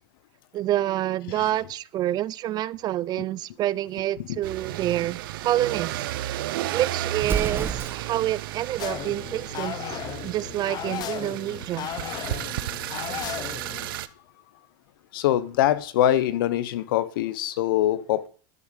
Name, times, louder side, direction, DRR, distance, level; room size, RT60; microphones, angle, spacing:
voice 1, 0.5-5.9 6.3-6.4 6.7-11.9, right 13 dB, 40° right, 0.6 m, -28 dB
sound 1, 4.4-14.1, right 14 dB, 85° right, 0.8 m, -33 dB
Explosion, 7.2-8.3, right 6 dB, 20° right, 1.0 m, -29 dB
sound 2, 8.8-14.0, left 12 dB, 35° left, 0.6 m, -35 dB
voice 2, 15.1-18.3, left 12 dB, 85° left, 1.0 m, -23 dB
12.0 x 7.1 x 6.5 m
supercardioid pair, 135°, 11 cm